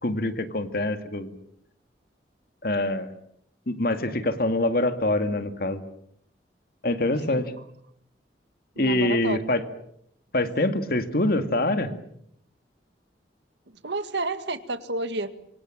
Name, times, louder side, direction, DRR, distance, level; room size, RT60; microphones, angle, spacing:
voice 1, 0.0-1.3 2.6-3.1 3.7-5.8 6.8-7.5 8.8-9.6 10.3-11.9, left 1 dB, 55° left, 9 dB, 2.2 m, -25 dB
voice 2, 8.8-9.4 13.7-15.3, right 2 dB, 80° right, 11 dB, 1.9 m, -30 dB
26.5 x 25.0 x 7.4 m, 0.72 s
head